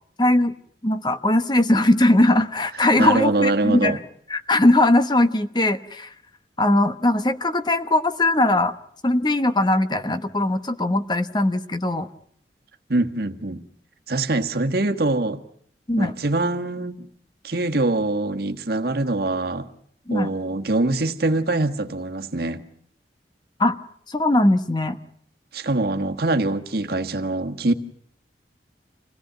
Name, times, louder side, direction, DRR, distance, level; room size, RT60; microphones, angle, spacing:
voice 1, 0.2-0.5 0.8-4.0 4.3-6.1 6.6-8.7 9.0-12.1 15.9-16.1 20.1-20.3 23.6-23.8 24.1-25.0, left 1 dB, 25° left, 1.0 m, -20 dB
voice 2, 3.0-4.0 12.9-13.6 14.1-15.4 16.0-17.1 17.4-19.7 20.1-22.6 25.5-27.7, right 2 dB, 60° right, 1.5 m, -23 dB
27.0 x 17.5 x 9.2 m
head